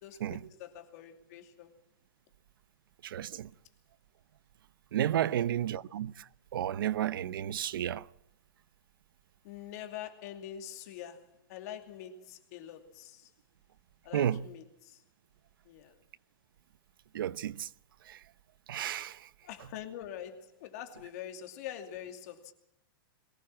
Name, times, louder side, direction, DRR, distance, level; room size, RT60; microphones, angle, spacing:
voice 1, 0.0-1.7 5.3-5.5 9.4-13.3 14.0-15.0 15.7-15.9 19.4-22.5, left 10 dB, 45° left, 2.6 m, -45 dB
voice 2, 3.0-3.5 4.9-6.1 6.5-8.1 14.1-14.4 17.1-17.7 18.1-18.2 18.7-19.2, right 11 dB, 70° right, 0.9 m, -32 dB
22.5 x 19.0 x 7.5 m
supercardioid pair, 165°, 12 cm